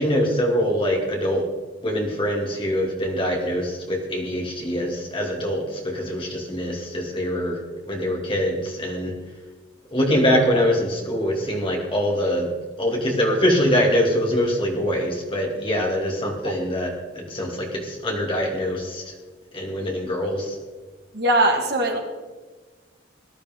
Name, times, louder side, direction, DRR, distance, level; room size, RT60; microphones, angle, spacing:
voice 1, 0.0-1.4 1.8-7.6 7.9-9.1 9.9-12.5 12.8-19.1 19.5-20.6, equal, 25° left, -1 dB, 2.4 m, -23 dB
voice 2, 21.1-22.0, right 1 dB, 55° right, 3 dB, 1.8 m, -20 dB
18.5 x 12.0 x 3.7 m, 1.3 s
head